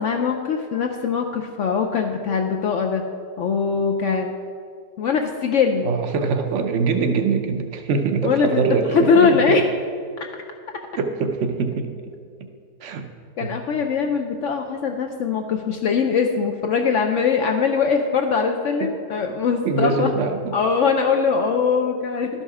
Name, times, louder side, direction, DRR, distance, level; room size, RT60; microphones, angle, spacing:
voice 1, 0.0-3.0 3.4-4.4 5.0-5.9 8.2-8.6 8.9-9.6 13.4-20.1 20.5-22.3, left 5 dB, 70° left, 3 dB, 0.7 m, -21 dB
voice 2, 5.8-9.6 11.0-11.9 12.8-13.1 13.4-13.6 19.6-20.5, right 4 dB, 60° right, 6 dB, 0.8 m, -23 dB
12.0 x 5.5 x 4.7 m, 2.2 s
omnidirectional pair, 1.7 m